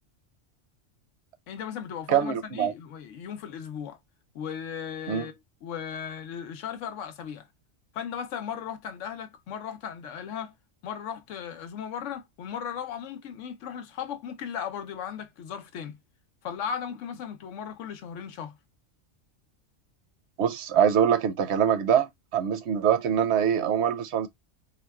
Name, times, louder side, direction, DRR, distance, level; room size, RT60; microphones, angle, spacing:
voice 1, 1.5-4.0 4.3-7.5 7.9-10.6 10.8-16.0 16.4-18.5, left 8 dB, 85° left, 1.0 m, -36 dB
voice 2, 2.1-2.7 5.1-5.2 20.4-24.3, right 8 dB, 70° right, 0.8 m, -24 dB
4.0 x 2.2 x 2.2 m
omnidirectional pair, 1.2 m